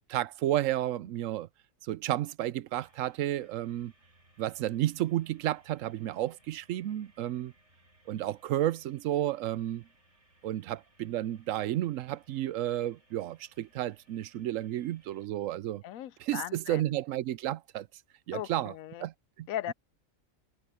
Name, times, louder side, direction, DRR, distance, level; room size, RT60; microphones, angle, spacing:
voice 1, 0.1-1.5 1.8-3.9 4.4-7.5 8.1-9.9 10.4-15.8 16.2-17.9 18.3-18.7 19.0-19.7, right 13 dB, 75° right, 0.9 m, -32 dB
sound 1, 2.7-15.3, right 1 dB, 60° right, 8.6 m, -66 dB
voice 2, 15.8-16.8 18.3-19.1 19.5-19.7, left 12 dB, 80° left, 1.0 m, -38 dB
omnidirectional pair, 1.4 m